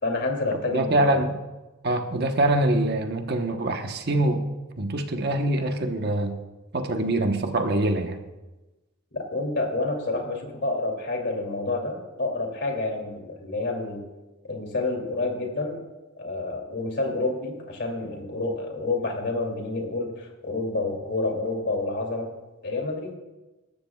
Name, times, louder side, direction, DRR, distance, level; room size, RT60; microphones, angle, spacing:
voice 1, 0.0-1.2 9.1-14.0 14.5-15.8 16.2-22.3 22.6-23.1, left 2 dB, 55° left, 1 dB, 2.8 m, -29 dB
voice 2, 0.7-1.4 1.8-4.5 4.8-6.4 6.7-8.2, right 1 dB, 50° right, 5 dB, 1.1 m, -24 dB
19.5 x 13.5 x 2.4 m, 1.1 s
head